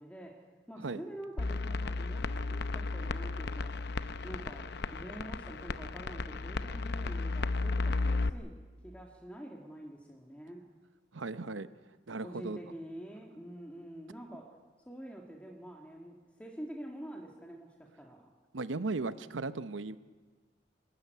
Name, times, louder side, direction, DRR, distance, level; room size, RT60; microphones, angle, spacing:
voice 1, 0.0-3.8 4.2-8.5 8.8-10.7 12.2-14.5 14.9-18.2, right 1 dB, 5° left, -1 dB, 1.9 m, -46 dB
sound 1, 1.4-8.3, left 3 dB, 60° left, 0.7 m, -34 dB
voice 2, 11.1-11.7 12.1-12.6 18.5-20.0, right 3 dB, 85° right, 13 dB, 0.8 m, -36 dB
26.0 x 13.0 x 9.3 m, 1.4 s
head